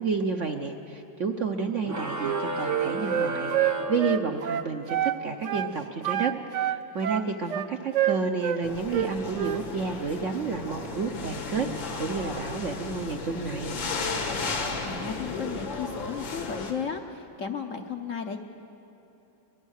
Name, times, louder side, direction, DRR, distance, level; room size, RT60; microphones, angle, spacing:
voice 1, 0.0-13.8, right 4 dB, 55° right, 5 dB, 0.9 m, -31 dB
sound 1, 1.8-4.7, right 2 dB, 20° right, 0.5 m, -33 dB
Wind instrument woodwind instrument, 2.2-5.2 5.4-5.7 6.0-8.6 8.9-9.6, right 11 dB, 75° right, 0.6 m, -27 dB
sound 2, 8.6-16.7, left 3 dB, 75° left, 2.5 m, -34 dB
voice 2, 14.8-18.4, left 6 dB, 55° left, 5 dB, 1.0 m, -34 dB
23.5 x 20.5 x 6.5 m, 2.9 s
omnidirectional pair, 2.1 m